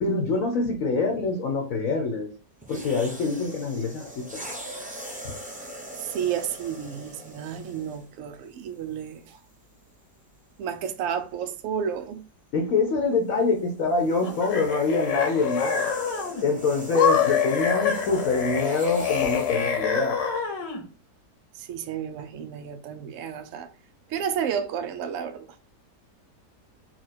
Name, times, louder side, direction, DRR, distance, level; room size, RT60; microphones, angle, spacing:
voice 1, 0.0-2.3 2.7-4.4 12.5-15.9 16.4-20.2, left 4 dB, 60° left, 1.1 m, -25 dB
sound 1, 2.6-8.1 9.0-9.2 13.1-19.8, right 1 dB, 10° right, 0.5 m, -41 dB
voice 2, 6.0-9.4 10.6-12.2 21.6-23.7 24.1-25.6, right 8 dB, 75° right, 0.7 m, -31 dB
sound 2, 14.2-16.4 16.9-20.8, left 7 dB, 75° left, 1.5 m, -26 dB
4.4 x 2.3 x 4.2 m
omnidirectional pair, 1.9 m